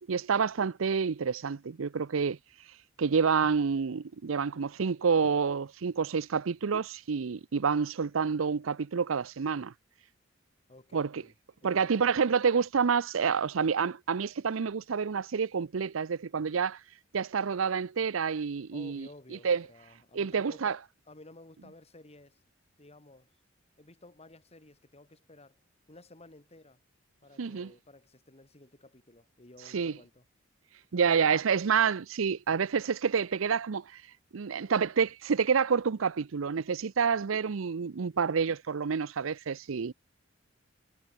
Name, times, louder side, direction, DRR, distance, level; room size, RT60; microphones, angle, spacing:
voice 1, 0.1-2.4 3.0-9.7 10.9-11.2 11.6-16.8 17.1-19.1 19.4-19.6 20.1-20.8 27.4-27.7 29.7-30.0 30.9-34.0 34.3-39.9, right 6 dB, 85° right, 0.6 m, -28 dB
voice 2, 10.7-11.3 11.6-12.0 18.7-22.4 22.8-23.3 23.8-25.6 25.9-26.8 27.2-30.2, left 2 dB, 30° left, 2.9 m, -54 dB
head